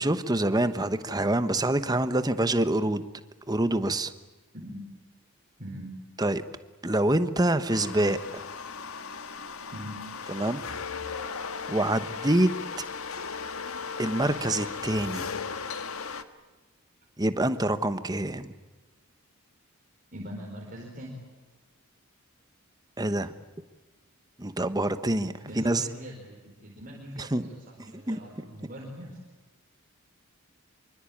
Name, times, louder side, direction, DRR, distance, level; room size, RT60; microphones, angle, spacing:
voice 1, 0.0-3.0 3.5-4.1 6.2-6.4 6.8-8.5 10.3-10.6 11.7-12.5 14.0-15.3 17.2-18.5 23.0-23.3 24.4-25.8 27.2-27.5 28.1-28.2, right 1 dB, 20° right, 11 dB, 1.1 m, -26 dB
sound 1, 7.7-16.2, left 5 dB, 75° left, 1.6 m, -36 dB
voice 2, 20.1-21.1 25.5-29.2, equal, 40° right, -1 dB, 4.6 m, -42 dB
26.5 x 24.5 x 8.7 m, 1.2 s
head